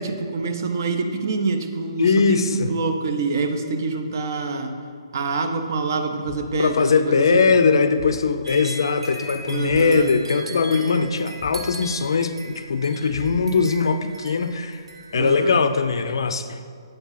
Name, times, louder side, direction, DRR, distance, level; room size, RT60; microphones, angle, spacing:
voice 1, 0.0-4.8 5.1-7.5 9.5-10.1 15.1-15.6, right 4 dB, 40° right, 6 dB, 0.5 m, -26 dB
voice 2, 2.0-2.7 6.6-14.8 15.1-16.6, left 5 dB, 65° left, 9 dB, 0.4 m, -20 dB
Thump thud, 6.3-6.7 8.0-8.3 9.7-10.0 11.4-11.8 13.1-13.7, left 3 dB, 15° left, 0.7 m, -38 dB
sound 1, 8.4-15.4, right 2 dB, 75° right, 1.0 m, -39 dB
7.8 x 3.6 x 5.7 m, 2.2 s
hypercardioid pair, 170°, 3 cm